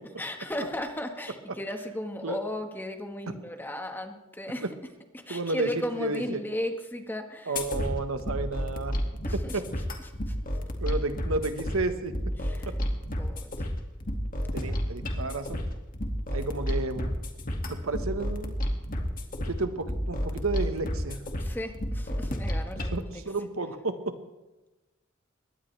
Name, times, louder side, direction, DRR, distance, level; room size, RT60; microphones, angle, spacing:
voice 1, 0.2-4.8 5.1-7.6 9.2-9.6 10.0-10.3 12.4-12.9 13.2-13.7 14.6-14.8 21.4-23.2, left 1 dB, 10° left, 4 dB, 1.6 m, -36 dB
voice 2, 5.3-5.7 6.0-6.4 7.5-8.9 9.5-9.6 10.8-12.1 12.7-12.8 14.5-15.6 16.3-17.1 17.7-18.5 19.5-21.2 22.9-24.1, right 3 dB, 85° right, 8 dB, 1.4 m, -31 dB
sound 1, 7.6-23.0, equal, 40° left, 2.2 m, -31 dB
21.5 x 18.5 x 3.4 m, 1.1 s
head